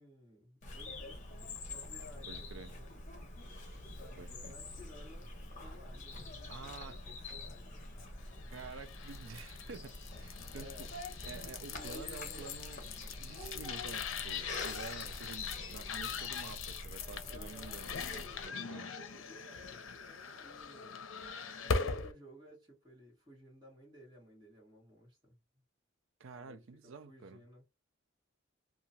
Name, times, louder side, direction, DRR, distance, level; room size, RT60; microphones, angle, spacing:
voice 1, 0.0-2.9 3.7-5.3 5.6-7.9 10.5-11.0 11.7-12.5 17.2-21.0 21.6-25.4 26.3-27.6, left 1 dB, 20° right, 1.6 m, -56 dB
Bird vocalization bird call bird song, 0.6-18.5, left 2 dB, 35° left, 0.9 m, -46 dB
voice 2, 2.3-2.7 4.2-4.5 6.5-7.1 8.5-10.9 11.2-12.8 13.2-17.9 18.5-18.9 26.2-27.4, right 4 dB, 70° right, 0.4 m, -49 dB
sound 1, 8.5-22.1, left 5 dB, 75° left, 0.6 m, -41 dB
2.9 x 2.4 x 2.7 m
head